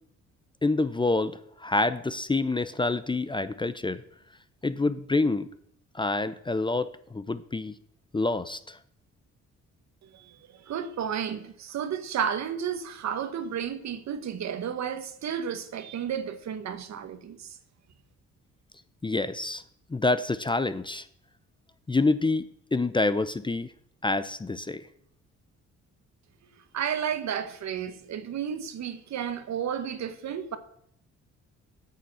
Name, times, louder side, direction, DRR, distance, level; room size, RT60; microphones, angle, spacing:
voice 1, 0.6-4.0 4.6-5.5 5.9-7.7 8.1-8.8 19.0-19.6 19.9-21.1 21.9-23.7 24.0-24.8, left 3 dB, 15° left, 0.6 m, -27 dB
voice 2, 10.1-17.6 26.7-30.6, right 8 dB, 65° right, 1.2 m, -32 dB
9.0 x 6.8 x 7.5 m
cardioid pair, 90°, 30 cm